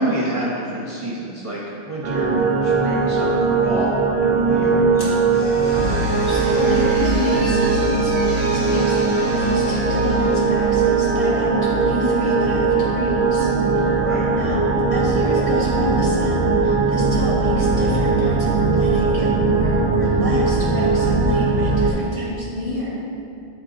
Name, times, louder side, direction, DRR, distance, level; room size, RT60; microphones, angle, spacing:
voice 1, 0.0-4.8 14.0-14.3, right 1 dB, 35° right, -7 dB, 0.9 m, -27 dB
sound 1, 2.0-21.9, right 4 dB, 70° right, 1.0 m, -19 dB
sound 2, 4.9-11.1, left 1 dB, 80° left, 1.7 m, -36 dB
voice 2, 6.0-13.8 14.3-14.6 14.9-23.0, left 1 dB, 35° left, -9 dB, 1.9 m, -28 dB
8.7 x 8.3 x 2.5 m, 2.6 s
omnidirectional pair, 1.0 m